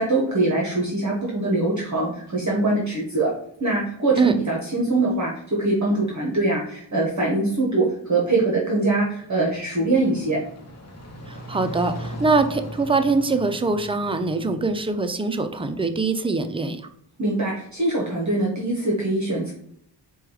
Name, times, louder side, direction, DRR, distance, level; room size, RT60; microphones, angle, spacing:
voice 1, 0.0-3.3 3.6-5.3 5.6-10.4 17.2-19.5, right 2 dB, 40° right, -3 dB, 1.0 m, -23 dB
sound 1, 9.1-15.1, equal, 35° left, 1.0 m, -38 dB
voice 2, 11.3-16.8, right 3 dB, 15° right, 8 dB, 0.3 m, -23 dB
4.6 x 2.3 x 4.7 m, 0.70 s
wide cardioid pair, 90°, 45 cm